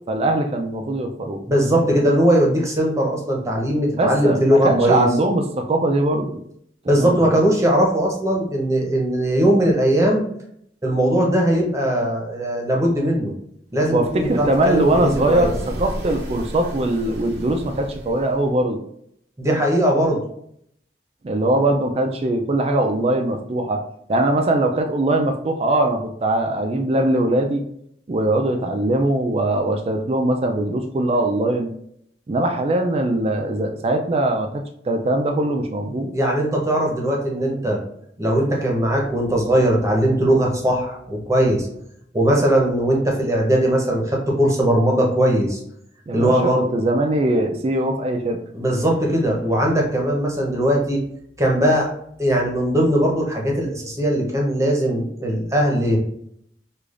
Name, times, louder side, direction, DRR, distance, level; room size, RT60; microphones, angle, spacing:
voice 1, 0.1-1.4 4.0-6.4 7.0-7.4 13.9-15.5 15.8-18.8 21.2-23.8 24.1-27.6 28.1-31.7 32.3-36.1 46.1-46.3 46.7-48.4, right 1 dB, 35° right, 4 dB, 0.3 m, -21 dB
voice 2, 1.5-5.1 6.9-10.2 10.8-13.3 13.7-15.5 19.4-20.2 36.1-37.8 38.2-41.7 42.1-45.6 46.1-46.6 48.5-51.0 51.4-51.9 52.2-56.0, right 1 dB, 15° right, -1 dB, 0.8 m, -19 dB
sound 1, 13.8-18.5, equal, 85° right, 0.7 m, -33 dB
4.8 x 2.4 x 2.4 m, 0.70 s
head